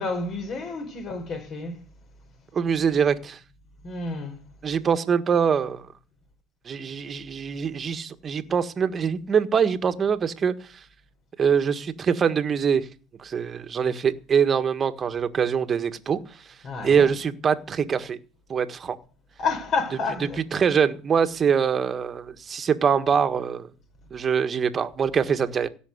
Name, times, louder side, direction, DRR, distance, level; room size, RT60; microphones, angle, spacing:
voice 1, 0.0-1.8 3.8-4.4 16.6-17.1 19.4-20.6, left 4 dB, 45° left, 4.4 m, -30 dB
voice 2, 2.5-3.4 4.6-5.9 6.6-10.8 11.4-12.9 13.2-16.4 16.8-18.2 18.5-19.0 20.5-23.7 24.1-25.7, right 7 dB, 30° right, 1.6 m, -23 dB
16.5 x 6.4 x 8.1 m
supercardioid pair, 100°, 0 cm